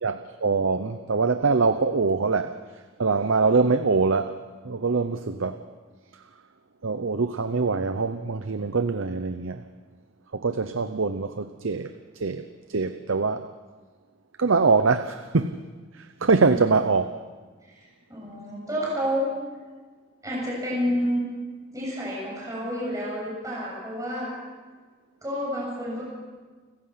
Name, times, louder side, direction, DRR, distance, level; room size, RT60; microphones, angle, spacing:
voice 1, 0.0-2.6 3.0-4.4 4.6-5.6 6.8-9.6 10.3-13.5 14.4-15.6 16.0-17.1, right 4 dB, 80° right, 10 dB, 0.7 m, -24 dB
voice 2, 17.6-19.3 20.2-21.2 21.7-24.3 25.2-26.0, equal, 15° right, -4 dB, 7.2 m, -29 dB
29.5 x 15.0 x 5.8 m, 1.4 s
head